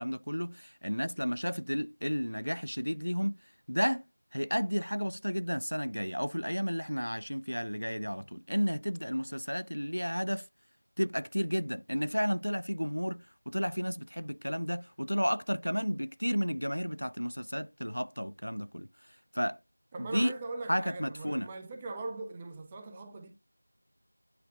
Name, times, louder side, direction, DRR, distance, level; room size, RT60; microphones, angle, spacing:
voice 1, 0.0-3.4 3.7-4.0 4.3-10.5 11.0-18.9 19.3-19.6 20.0-20.3 20.7-21.5, equal, 90° left, 0.5 m, -32 dB
voice 2, 19.9-23.3, right 3 dB, 5° right, 0.3 m, -40 dB
9.5 x 3.4 x 3.7 m
figure-of-eight pair, 175°, 0 cm